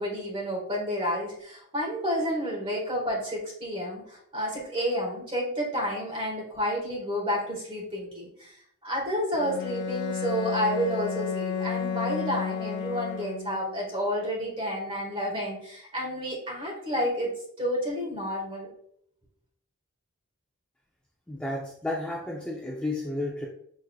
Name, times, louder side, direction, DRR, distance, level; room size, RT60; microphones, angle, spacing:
voice 1, 0.0-8.5 8.8-18.7, equal, 25° right, -4 dB, 1.8 m, -30 dB
Bowed string instrument, 9.3-13.8, left 6 dB, 50° left, 0.3 m, -32 dB
voice 2, 21.3-23.5, left 2 dB, 5° left, -4 dB, 0.6 m, -32 dB
6.2 x 3.7 x 2.3 m, 0.68 s
head